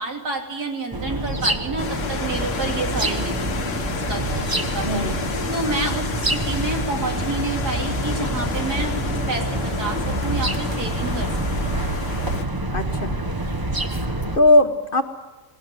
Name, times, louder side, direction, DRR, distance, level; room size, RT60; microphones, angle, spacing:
voice 1, 0.0-5.1 5.5-9.0 9.3-11.3, right 3 dB, 85° right, 1 dB, 3.8 m, -29 dB
sound 1, 0.9-14.4, right 1 dB, 15° right, 0.8 m, -26 dB
sound 2, 1.8-12.4, left 5 dB, 55° left, 1.6 m, -31 dB
voice 2, 4.9-5.2 12.7-13.2 14.0-15.0, left 1 dB, 35° left, 6 dB, 1.4 m, -19 dB
19.0 x 18.5 x 9.4 m, 1.1 s
omnidirectional pair, 1.7 m